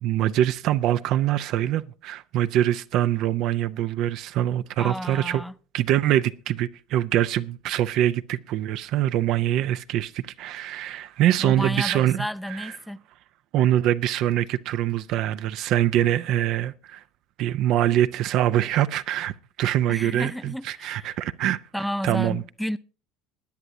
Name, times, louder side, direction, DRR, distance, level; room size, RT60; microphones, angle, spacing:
voice 1, 0.0-5.4 5.7-12.7 13.5-17.0 17.4-21.6 22.0-22.4, right 12 dB, 60° right, 0.5 m, -24 dB
voice 2, 4.8-5.5 11.4-13.0 19.9-21.1 21.7-22.8, equal, ahead, 0.5 m, -31 dB
20.0 x 9.9 x 2.7 m
hypercardioid pair, 70°, 0 cm